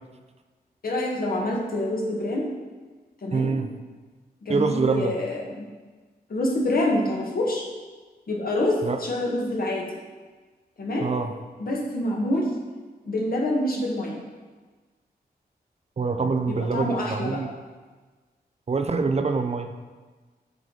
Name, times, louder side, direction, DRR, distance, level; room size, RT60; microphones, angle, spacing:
voice 1, 0.8-2.4 3.2-3.5 4.4-5.6 6.3-7.6 8.3-9.8 10.8-11.1 11.6-12.4 13.0-14.2 16.2-16.3 16.6-17.4, left 1 dB, 65° left, -2 dB, 1.4 m, -26 dB
voice 2, 3.3-3.7 4.5-5.1 8.8-9.0 11.0-11.3 16.0-17.5 18.7-19.7, right 4 dB, 40° right, 7 dB, 0.5 m, -25 dB
8.0 x 4.7 x 3.9 m, 1.4 s
wide cardioid pair, 90°, 17 cm